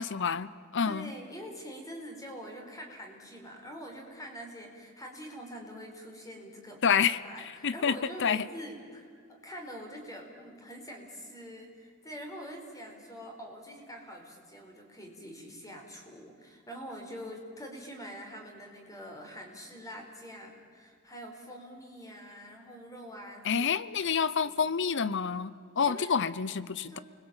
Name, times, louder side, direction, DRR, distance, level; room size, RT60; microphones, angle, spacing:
voice 1, 0.0-1.1 6.8-7.2 7.6-8.4 23.4-27.0, left 6 dB, 55° left, 17 dB, 0.7 m, -28 dB
voice 2, 0.8-23.7 24.0-24.6 25.8-26.2 26.9-27.0, equal, 15° left, 2 dB, 4.4 m, -45 dB
29.0 x 21.0 x 8.9 m, 2.2 s
head